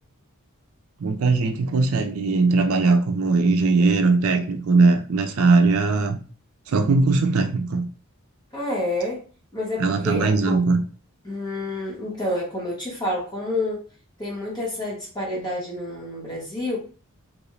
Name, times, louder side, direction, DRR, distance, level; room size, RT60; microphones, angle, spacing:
voice 1, 1.0-6.2 6.7-7.8 9.8-10.8, right 3 dB, 70° right, 5 dB, 0.5 m, -20 dB
voice 2, 8.5-9.2 9.5-10.6 11.2-13.8 14.2-16.8, left 1 dB, 20° left, -4 dB, 1.3 m, -28 dB
3.1 x 2.6 x 3.2 m, 0.40 s
head